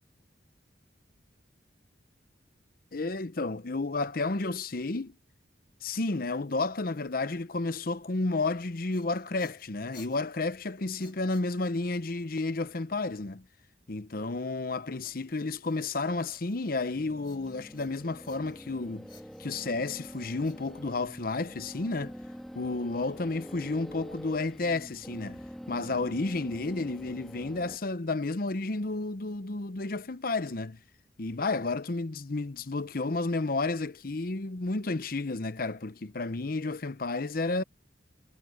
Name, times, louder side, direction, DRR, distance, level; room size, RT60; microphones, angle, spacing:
voice 1, 2.9-5.1 5.8-13.4 13.9-19.1 19.4-22.1 22.5-30.8 31.2-37.6, left 3 dB, 55° left, 0.8 m, -31 dB
sound 1, 8.8-12.0 15.0-16.9 17.2-18.7 19.1-21.3, left 5 dB, 25° left, 2.6 m, -58 dB
sound 2, 16.8-27.8, equal, ahead, 1.7 m, -45 dB
head